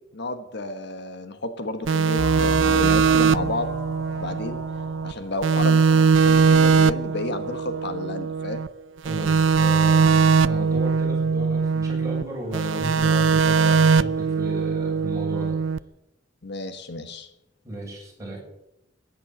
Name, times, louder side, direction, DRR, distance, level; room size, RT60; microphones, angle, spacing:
voice 1, 0.1-3.7 4.2-4.6 5.0-8.6 16.4-17.3, left 2 dB, 65° left, 8 dB, 1.4 m, -31 dB
sound 1, 1.9-5.1 5.4-8.7 9.1-12.2 12.5-15.8, right 5 dB, 85° right, 0.5 m, -20 dB
sound 2, 2.2-7.5, equal, 20° left, 3.7 m, -34 dB
voice 2, 9.0-15.6 17.6-18.4, equal, 20° right, -3 dB, 7.4 m, -34 dB
14.0 x 10.5 x 7.9 m, 0.87 s
head